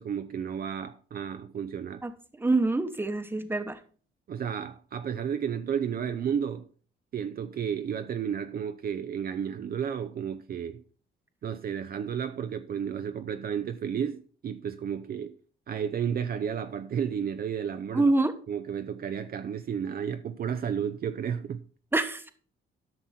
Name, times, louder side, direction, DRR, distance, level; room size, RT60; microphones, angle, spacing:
voice 1, 0.0-2.0 4.3-6.7 7.1-10.8 11.4-15.4 15.7-18.1 18.5-21.6, right 8 dB, 50° right, 0.6 m, -32 dB
voice 2, 2.4-3.8 17.9-18.3 21.9-22.3, right 2 dB, 10° right, 1.0 m, -25 dB
10.5 x 6.0 x 4.3 m
cardioid pair, 90°, 20 cm